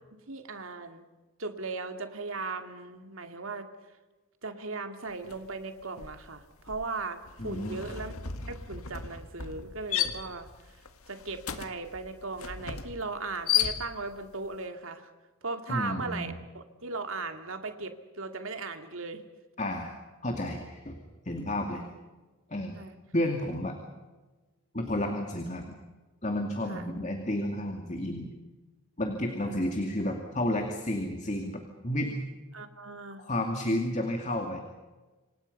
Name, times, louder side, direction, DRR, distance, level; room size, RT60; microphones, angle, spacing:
voice 1, 0.3-1.1 1.4-3.7 4.4-8.1 8.5-10.5 11.1-15.1 15.4-19.2 22.7-23.0 26.7-26.8 29.5-29.6 32.5-33.2, right 3 dB, 70° right, 7 dB, 2.4 m, -37 dB
sound 1, 5.2-5.5 5.8-14.3, left 9 dB, 85° left, 1.7 m, -34 dB
voice 2, 7.4-7.8 15.7-16.4 19.6-20.0 20.2-21.0 21.3-21.8 22.5-22.8 23.1-23.8 24.7-25.6 26.2-28.4 29.0-32.2 33.2-34.6, left 1 dB, 35° left, 4 dB, 2.4 m, -31 dB
28.0 x 25.5 x 5.5 m, 1.2 s
head